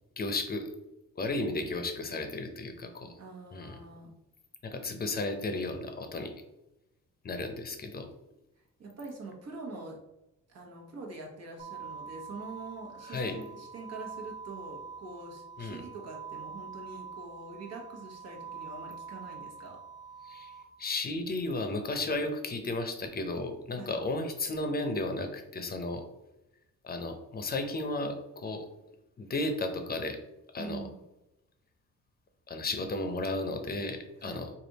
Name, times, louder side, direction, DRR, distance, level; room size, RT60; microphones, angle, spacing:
voice 1, 0.2-0.7 1.2-3.1 3.5-3.8 4.6-6.3 7.2-8.1 13.1-13.4 15.6-15.8 20.2-20.5 20.8-26.0 26.8-28.7 29.2-30.2 30.5-30.8 32.5-34.5, left 2 dB, 30° left, 6 dB, 0.6 m, -34 dB
voice 2, 3.2-4.1 8.8-10.0 10.5-19.8 23.7-23.9 30.6-31.0 34.2-34.4, right 3 dB, 60° right, 0 dB, 1.2 m, -44 dB
sound 1, 11.6-20.6, right 6 dB, 25° right, 0.8 m, -45 dB
3.3 x 2.5 x 4.0 m, 0.93 s
cardioid pair, 90°, 30 cm